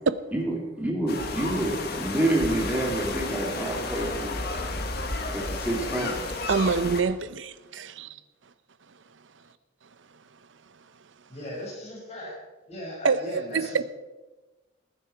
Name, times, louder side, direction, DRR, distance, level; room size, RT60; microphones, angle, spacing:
voice 1, 0.3-4.3 5.3-6.3, right 1 dB, 10° right, 2.8 m, -28 dB
sound 1, 1.1-7.0, left 2 dB, 50° left, 1.5 m, -32 dB
voice 2, 6.5-8.1 13.0-13.8, right 4 dB, 70° right, 0.6 m, -25 dB
voice 3, 11.3-12.3 12.7-13.8, equal, 30° left, 5.8 m, -38 dB
20.0 x 9.8 x 4.6 m
head